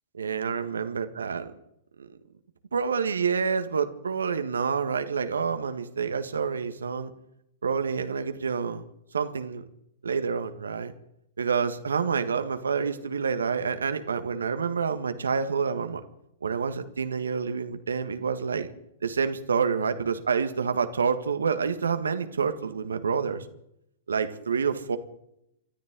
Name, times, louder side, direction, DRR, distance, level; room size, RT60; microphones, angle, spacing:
voice 1, 0.1-1.5 2.0-2.1 2.7-7.1 7.6-8.8 9.1-9.6 10.0-10.9 11.4-16.0 16.4-18.7 19.0-23.5 24.1-25.0, right 5 dB, 80° right, 9 dB, 1.7 m, -28 dB
27.5 x 13.5 x 3.8 m, 0.77 s
hypercardioid pair, 110°, 0 cm